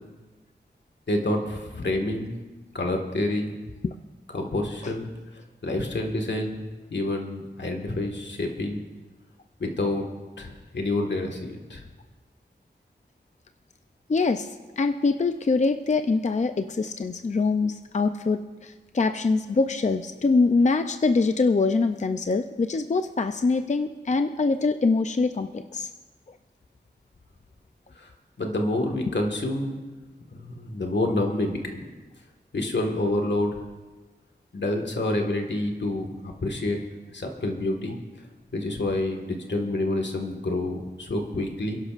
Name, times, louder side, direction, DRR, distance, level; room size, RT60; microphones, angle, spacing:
voice 1, 1.1-2.3 2.7-3.5 4.3-5.1 5.6-6.6 6.9-8.8 9.6-10.1 10.4-11.9 27.9-28.1 28.4-29.8 30.3-31.8 32.5-33.6 34.5-36.8 37.1-38.0 38.5-41.8, left 1 dB, 80° left, 2 dB, 1.7 m, -28 dB
voice 2, 14.1-14.5 14.8-25.9, left 3 dB, 40° left, 7 dB, 0.5 m, -24 dB
28.0 x 11.5 x 2.5 m, 1.3 s
wide cardioid pair, 80°, 18 cm